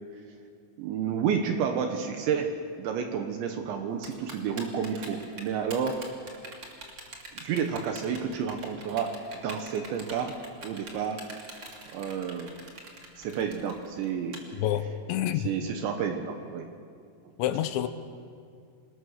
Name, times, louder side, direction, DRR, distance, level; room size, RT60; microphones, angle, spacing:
voice 1, 0.8-6.0 7.3-10.4 10.6-11.2 11.9-12.6 13.2-14.4 15.4-16.7, right 7 dB, 70° right, 5 dB, 3.3 m, -30 dB
Typing, 4.0-14.4, right 2 dB, 30° right, 2.4 m, -44 dB
voice 2, 14.5-15.5 17.4-17.9, left 11 dB, 75° left, 10 dB, 3.0 m, -28 dB
28.5 x 20.0 x 6.6 m, 2.3 s
omnidirectional pair, 5.8 m